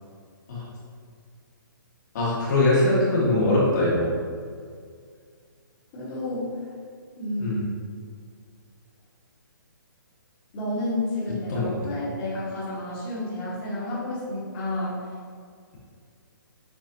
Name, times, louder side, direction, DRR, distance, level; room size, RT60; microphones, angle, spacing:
voice 1, 2.1-4.1 7.4-7.6 11.5-11.7, left 2 dB, 55° left, -6 dB, 1.3 m, -22 dB
voice 2, 5.9-6.6 7.2-7.6 10.5-15.0, left 1 dB, 30° left, -9 dB, 1.2 m, -30 dB
7.1 x 2.4 x 2.6 m, 2.1 s
hypercardioid pair, 150°, 12 cm